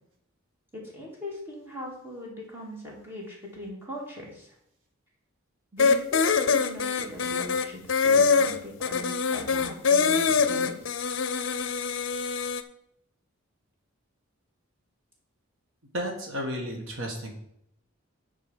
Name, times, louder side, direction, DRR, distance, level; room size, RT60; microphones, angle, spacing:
voice 1, 0.9-4.5 5.7-10.9, left 1 dB, 10° right, -3 dB, 2.5 m, -40 dB
sound 1, 5.8-12.6, left 5 dB, 60° left, 0.6 m, -24 dB
voice 2, 15.9-17.3, equal, 65° right, 2 dB, 1.4 m, -33 dB
9.7 x 4.7 x 6.5 m, 0.76 s
head